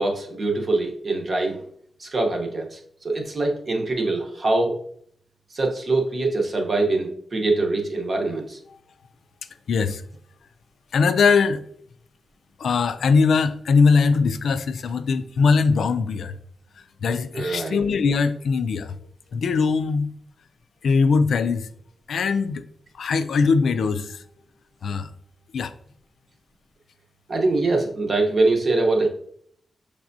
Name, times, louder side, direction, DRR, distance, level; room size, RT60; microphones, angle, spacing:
voice 1, 0.0-1.6 2.0-4.8 5.5-8.6 17.3-17.8 27.3-29.1, right 2 dB, 40° right, 0.8 m, -23 dB
voice 2, 9.7-10.0 10.9-11.6 12.6-16.4 17.0-19.0 19.3-20.1 20.8-21.7 22.1-22.6 22.9-24.2 24.8-25.1 25.5-25.7, left 5 dB, 85° left, 0.3 m, -21 dB
6.0 x 3.3 x 2.6 m
wide cardioid pair, 165°, 0 cm